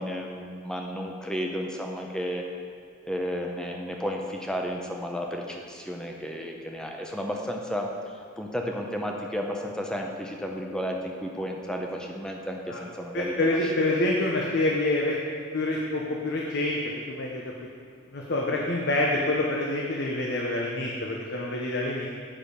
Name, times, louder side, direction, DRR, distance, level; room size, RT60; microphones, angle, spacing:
voice 1, 0.0-2.4 3.0-7.9 8.4-14.1, equal, 5° left, 1 dB, 0.7 m, -33 dB
voice 2, 13.1-15.2 15.5-16.8 17.1-17.5 18.1-22.1, left 2 dB, 55° left, -2 dB, 0.8 m, -27 dB
7.6 x 6.4 x 5.1 m, 2.1 s
head